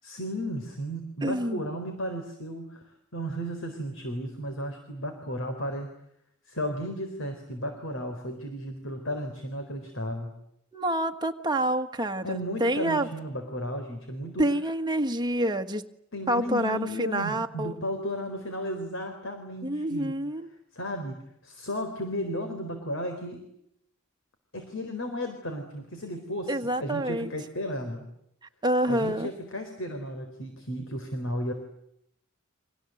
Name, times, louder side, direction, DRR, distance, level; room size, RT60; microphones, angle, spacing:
voice 1, 0.0-5.9 6.5-10.3 12.2-14.5 16.1-20.1 20.7-23.5 24.5-28.1 28.9-31.5, equal, 65° left, 5 dB, 4.2 m, -34 dB
voice 2, 1.2-1.7 10.7-13.1 14.4-15.9 16.3-17.8 19.6-20.5 26.5-27.3 28.6-29.3, right 1 dB, 20° right, 5 dB, 1.6 m, -27 dB
30.0 x 25.0 x 8.0 m, 0.75 s
head